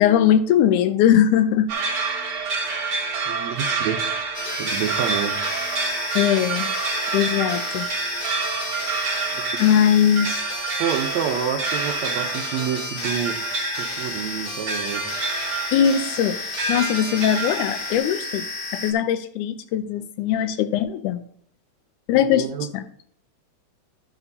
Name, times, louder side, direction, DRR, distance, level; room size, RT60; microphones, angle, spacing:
voice 1, 0.0-1.7 6.2-6.7 7.1-7.9 9.6-10.4 15.7-16.4 16.7-18.5 18.7-21.2 22.1-22.5 22.7-22.8, left 9 dB, 85° left, 11 dB, 2.0 m, -20 dB
sound 1, 1.7-18.0, right 4 dB, 50° right, 2.1 m, -28 dB
voice 2, 3.3-4.1 4.6-5.4 9.3-9.7 10.8-15.2 22.1-22.7, right 8 dB, 75° right, 5 dB, 1.8 m, -28 dB
sound 2, 4.3-18.9, left 2 dB, 40° left, 1.3 m, -32 dB
12.5 x 7.1 x 2.7 m, 0.64 s
omnidirectional pair, 3.6 m